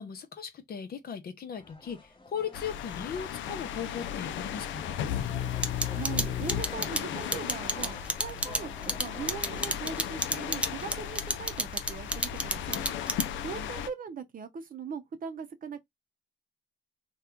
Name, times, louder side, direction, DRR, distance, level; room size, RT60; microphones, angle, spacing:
voice 1, 0.0-5.0 13.5-13.7, left 7 dB, 50° left, 0.8 m, -38 dB
sound 1, 1.5-9.9, left 2 dB, 25° left, 1.1 m, -49 dB
sound 2, 2.5-13.9, left 10 dB, 75° left, 0.4 m, -35 dB
sound 3, 5.6-13.5, right 1 dB, 5° right, 0.5 m, -29 dB
voice 2, 5.9-8.7 9.0-12.8 13.4-15.8, right 6 dB, 45° right, 0.7 m, -40 dB
2.8 x 2.3 x 3.5 m
cardioid pair, 90°, 20 cm